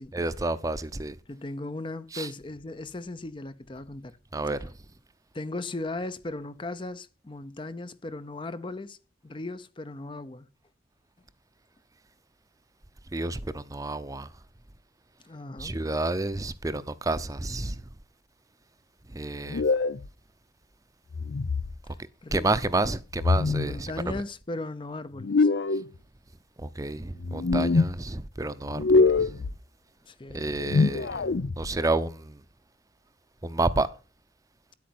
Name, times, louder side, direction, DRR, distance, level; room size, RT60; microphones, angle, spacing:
voice 1, 0.1-1.2 2.1-2.3 4.3-4.7 13.1-14.3 15.6-17.8 19.1-19.6 22.3-24.1 26.6-29.3 30.3-32.4 33.4-33.9, right 2 dB, 20° right, 0.6 m, -30 dB
voice 2, 1.3-4.2 4.5-4.6 5.3-9.0 9.2-10.5 15.2-15.8 22.2-22.6 23.6-25.5 30.0-30.5, left 2 dB, 30° left, 0.6 m, -37 dB
sound 1, 19.5-20.1 21.1-21.8 23.1-23.8 25.2-25.9 27.2-27.9 28.7-29.5 30.5-31.7, left 3 dB, 75° left, 0.6 m, -24 dB
10.5 x 8.5 x 7.7 m
head